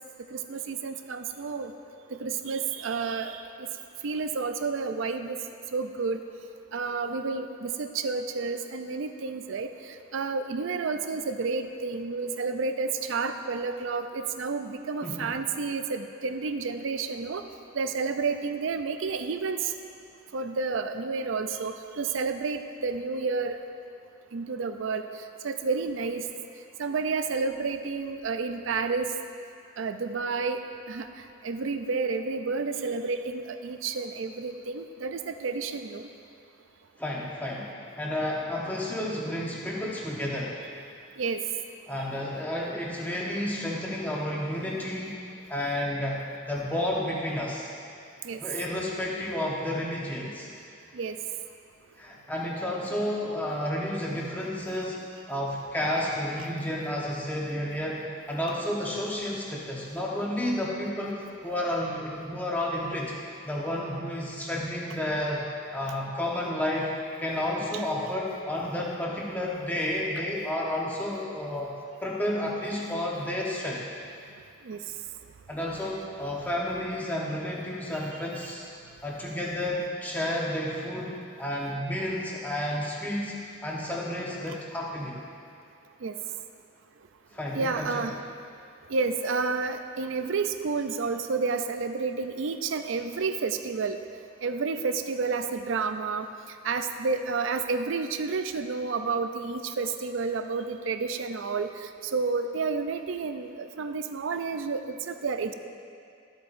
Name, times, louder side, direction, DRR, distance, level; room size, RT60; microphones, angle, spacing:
voice 1, 0.3-1.7 2.1-3.7 4.0-5.4 5.7-6.2 6.7-17.4 17.7-19.7 20.3-23.6 24.3-25.0 25.4-26.2 26.8-29.1 29.8-30.6 30.9-31.1 31.4-36.1 41.2-41.4 48.2-48.4 50.9-51.2 74.6-74.8 86.0-86.1 87.5-88.1 88.9-94.0 94.4-96.3 96.6-105.5, right 4 dB, 70° right, 8 dB, 0.5 m, -30 dB
voice 2, 15.0-15.4 37.0-40.6 41.9-45.2 45.5-47.7 48.4-50.5 52.0-55.0 55.3-63.1 63.4-65.4 65.7-66.9 67.2-71.7 72.0-73.8 75.5-78.7 79.0-83.3 83.6-85.2 87.3-88.1, left 1 dB, 10° left, -4 dB, 1.0 m, -31 dB
12.5 x 8.0 x 2.6 m, 2.4 s
head